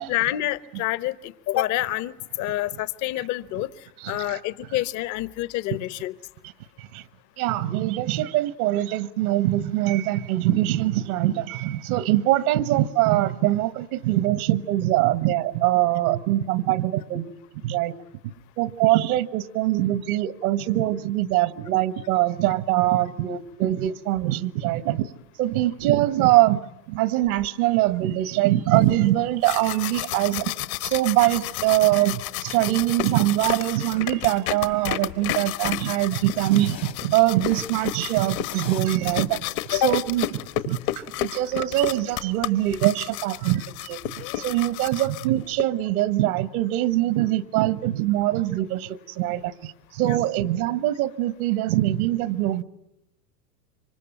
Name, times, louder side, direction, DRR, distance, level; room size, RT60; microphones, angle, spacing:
voice 1, 0.0-3.7 4.1-6.1 39.7-40.0 50.1-50.2, left 15 dB, 35° left, 16 dB, 1.0 m, -27 dB
voice 2, 4.0-4.4 6.8-7.0 7.4-17.2 17.6-17.9 18.6-25.1 25.4-26.6 26.9-30.5 30.8-39.4 39.7-40.3 40.7-52.6, right 15 dB, 60° right, 15 dB, 1.4 m, -23 dB
sound 1, 27.3-27.6 28.5-29.7 31.1-32.4 32.8-34.9 36.0-41.7, left 11 dB, 80° left, 3.6 m, -47 dB
sound 2, 29.2-45.6, left 16 dB, 55° left, 1.4 m, -32 dB
26.5 x 24.5 x 9.1 m, 0.85 s
hypercardioid pair, 115°, 49 cm